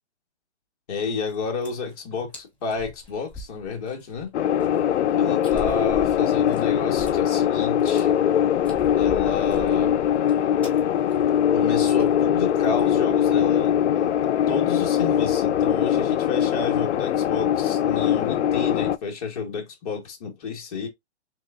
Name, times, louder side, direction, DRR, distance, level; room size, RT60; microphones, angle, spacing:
voice 1, 0.9-4.3 5.2-8.1 8.9-10.0 11.5-20.9, left 5 dB, 35° left, 1.1 m, -31 dB
sound 1, 1.1-1.3 1.6-1.9 2.3-2.4 2.7-4.2 4.6-4.7 5.4-7.4 7.7-8.0 8.5-10.3 10.6-10.8 11.1-11.3 11.6-11.7 12.0-12.2 12.6-12.9, left 1 dB, 5° left, 0.8 m, -40 dB
sound 2, 4.3-19.0, left 10 dB, 80° left, 0.5 m, -21 dB
3.5 x 3.4 x 2.3 m
hypercardioid pair, 165°, 34 cm